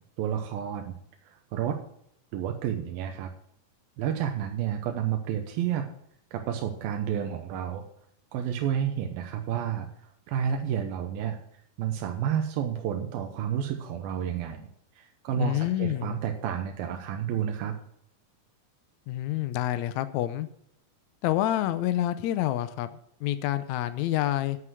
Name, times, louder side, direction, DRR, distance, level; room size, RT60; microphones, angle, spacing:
voice 1, 0.2-0.9 1.2-1.8 2.3-3.3 4.0-5.9 6.3-7.8 8.3-9.9 10.3-11.4 11.8-14.7 15.0-17.7, right 9 dB, 90° right, 4 dB, 2.7 m, -30 dB
voice 2, 15.4-16.2 19.1-20.5 21.2-24.6, left 13 dB, 85° left, 12 dB, 1.6 m, -28 dB
9.6 x 7.9 x 6.3 m, 0.70 s
omnidirectional pair, 4.2 m